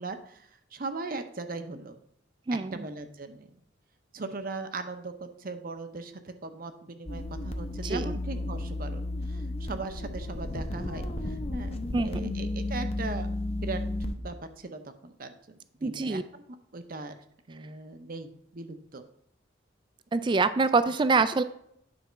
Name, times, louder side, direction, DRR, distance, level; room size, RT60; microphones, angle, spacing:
voice 1, 0.0-2.0 2.7-3.6 4.1-13.8 14.2-16.4 16.7-17.2 17.5-19.0, right 3 dB, 50° right, 8 dB, 0.8 m, -39 dB
voice 2, 2.5-2.8 7.8-8.2 11.9-12.3 15.8-16.2 20.1-21.4, right 4 dB, 25° right, 13 dB, 0.3 m, -25 dB
sound 1, 7.1-14.2, left 2 dB, 35° left, 0.7 m, -33 dB
9.7 x 4.1 x 5.6 m, 0.72 s
head